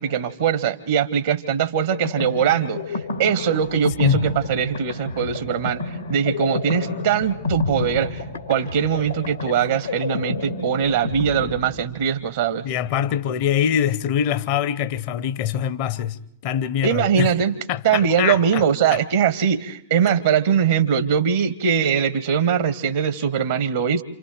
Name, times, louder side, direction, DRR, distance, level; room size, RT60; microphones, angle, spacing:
voice 1, 0.0-8.2 8.5-12.7 16.8-17.5 17.8-24.0, right 7 dB, 60° right, 0.8 m, -21 dB
sound 1, 1.7-12.3, left 3 dB, 80° left, 2.4 m, -30 dB
voice 2, 12.6-17.3 17.7-18.6 18.9-19.0, left 9 dB, 45° left, 0.9 m, -23 dB
28.5 x 28.0 x 3.4 m
figure-of-eight pair, 90°, 0 cm